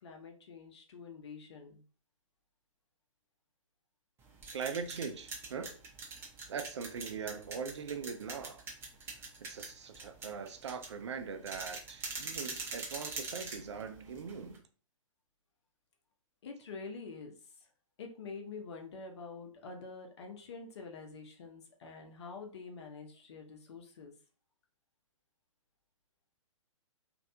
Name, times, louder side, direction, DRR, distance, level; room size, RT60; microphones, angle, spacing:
voice 1, 0.0-1.8 16.4-17.7 18.0-24.1, left 4 dB, 55° left, 0.8 m, -47 dB
sound 1, 4.2-14.6, right 3 dB, 15° right, 0.7 m, -44 dB
voice 2, 4.5-5.8 6.5-8.6 9.4-14.6, right 6 dB, 55° right, 0.5 m, -41 dB
3.1 x 2.5 x 2.7 m
figure-of-eight pair, 120°, 17 cm